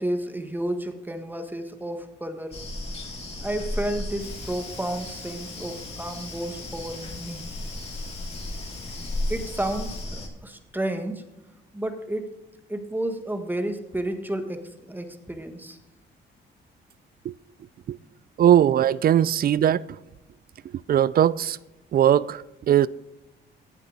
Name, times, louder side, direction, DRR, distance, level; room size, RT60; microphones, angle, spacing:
voice 1, 0.0-2.5 3.4-7.4 9.3-11.2 11.7-12.3 12.7-15.8, right 1 dB, 10° right, 1.6 m, -31 dB
sound 1, 2.5-10.3, left 1 dB, 30° left, 2.7 m, -35 dB
Hiss, 4.2-10.0, left 7 dB, 80° left, 2.4 m, -48 dB
voice 2, 18.4-20.0 20.9-21.6 21.9-22.9, right 10 dB, 50° right, 0.4 m, -20 dB
17.0 x 7.1 x 4.0 m
cardioid pair, 90°, 20 cm